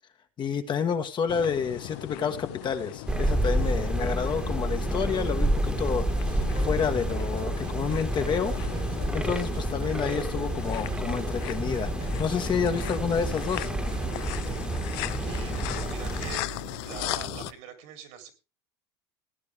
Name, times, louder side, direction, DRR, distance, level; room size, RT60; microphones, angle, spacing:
voice 1, 0.4-8.6 9.1-13.7, left 6 dB, 35° left, 7 dB, 1.6 m, -29 dB
sound 1, 1.3-17.5, left 19 dB, 75° left, 0.6 m, -38 dB
sound 2, 3.1-16.4, right 1 dB, 5° right, 1.6 m, -29 dB
sound 3, 6.1-17.5, right 7 dB, 40° right, 1.9 m, -42 dB
voice 2, 15.2-18.3, right 9 dB, 70° right, 6 dB, 3.6 m, -44 dB
17.0 x 9.7 x 3.6 m, 0.29 s
supercardioid pair, 110°, 14 cm